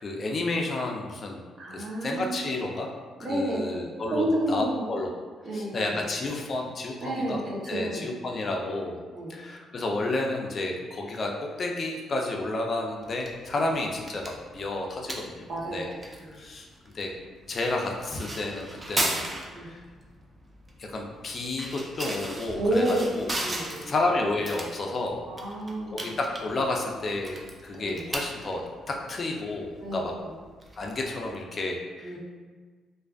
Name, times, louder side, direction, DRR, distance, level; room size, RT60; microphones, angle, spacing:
voice 1, 0.0-1.4 1.7-2.9 3.3-5.1 5.5-7.4 7.7-9.0 9.3-15.9 16.3-16.7 16.9-17.1 17.5-19.2 19.5-19.8 20.8-23.3 23.8-25.2 25.9-28.6 28.9-30.1 30.8-32.2, left 2 dB, 45° left, 0 dB, 0.4 m, -31 dB
voice 2, 1.6-2.5 3.2-4.8 5.4-6.0 7.0-8.1 9.1-9.3 13.5-13.6 15.5-15.9 16.2-16.4 19.5-19.7 22.5-23.1 23.4-23.9 25.3-26.1 27.8-28.0 29.8-30.0 32.0-32.2, right 1 dB, 50° right, -5 dB, 0.7 m, -30 dB
sound 1, 13.0-31.4, right 1 dB, 25° right, 0.4 m, -38 dB
2.4 x 2.3 x 2.3 m, 1.4 s
cardioid pair, 90°, 0 cm